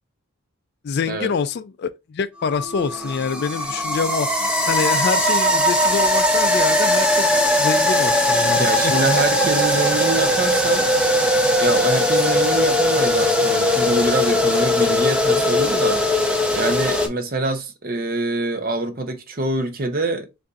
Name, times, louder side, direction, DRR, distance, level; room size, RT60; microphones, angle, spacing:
voice 1, 0.8-8.9, left 5 dB, 45° left, 0.3 m, -26 dB
sound 1, 2.4-17.1, left 1 dB, 5° right, 0.6 m, -19 dB
voice 2, 8.6-10.9 11.6-16.0 16.5-20.4, right 2 dB, 40° right, 0.7 m, -24 dB
6.6 x 2.6 x 2.4 m
head